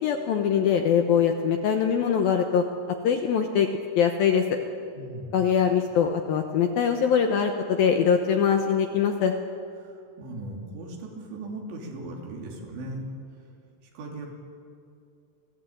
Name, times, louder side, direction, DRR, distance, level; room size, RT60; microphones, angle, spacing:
voice 1, 0.0-2.6 3.0-3.7 4.0-4.4 5.3-9.3, left 7 dB, 75° left, 4 dB, 2.3 m, -22 dB
voice 2, 5.0-5.3 9.8-13.0 13.3-13.5 13.9-14.3, right 2 dB, 70° right, 0 dB, 5.1 m, -38 dB
27.0 x 16.0 x 8.7 m, 2.5 s
omnidirectional pair, 5.5 m